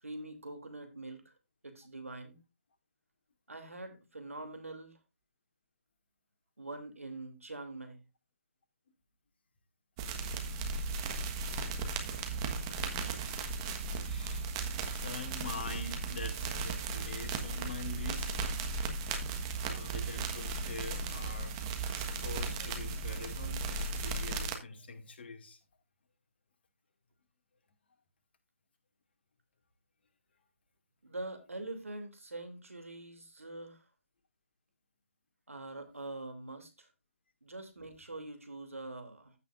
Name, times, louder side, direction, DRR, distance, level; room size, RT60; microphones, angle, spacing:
voice 1, 0.0-1.3 1.6-2.4 3.5-5.0 6.6-8.0 31.0-33.8 35.5-36.9 37.4-39.3, right 2 dB, 85° right, 2.8 m, -44 dB
sound 1, 10.0-24.6, right 4 dB, 25° right, 1.4 m, -36 dB
voice 2, 14.0-14.5 14.9-18.5 19.6-25.6, left 4 dB, 50° left, 2.2 m, -44 dB
15.0 x 6.1 x 2.5 m
figure-of-eight pair, 150°, 7 cm